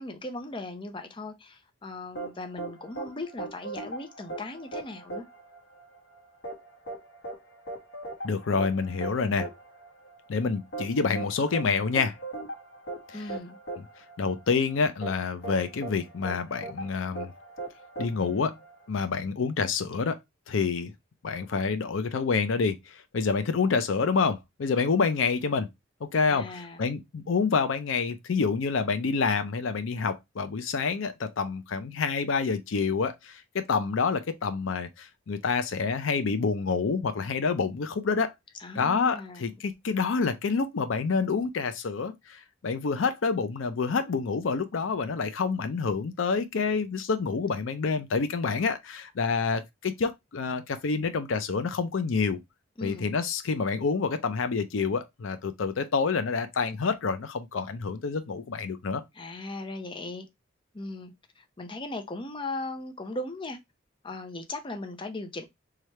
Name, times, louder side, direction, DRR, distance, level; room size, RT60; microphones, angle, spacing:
voice 1, 0.0-5.2 13.1-13.6 26.3-26.8 38.6-39.4 52.8-53.1 59.1-60.3 60.7-63.6 64.0-65.5, left 2 dB, 25° left, 0.6 m, -38 dB
sound 1, 2.1-19.0, right 2 dB, 55° left, 1.0 m, -39 dB
voice 2, 8.2-9.5 10.3-12.2 13.1-13.2 14.2-17.3 18.0-18.6 18.9-20.2 20.5-20.9 21.2-25.7 26.1-38.3 38.7-52.4 52.8-59.0, left 5 dB, 80° left, 0.5 m, -28 dB
3.2 x 2.4 x 4.2 m
head